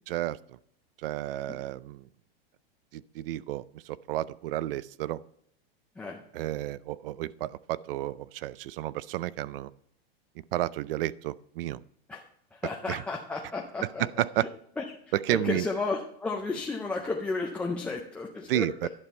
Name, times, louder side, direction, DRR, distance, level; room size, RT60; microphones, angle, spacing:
voice 1, 0.1-0.4 1.0-2.1 2.9-5.2 6.3-9.7 10.5-11.8 12.9-13.0 14.0-14.5 15.1-15.7 18.5-18.9, right 14 dB, 65° right, 20 dB, 0.5 m, -31 dB
voice 2, 12.5-14.0 14.8-14.9 15.3-18.9, left 3 dB, 5° left, -1 dB, 0.3 m, -33 dB
11.0 x 5.3 x 4.3 m, 0.69 s
supercardioid pair, 145°, 31 cm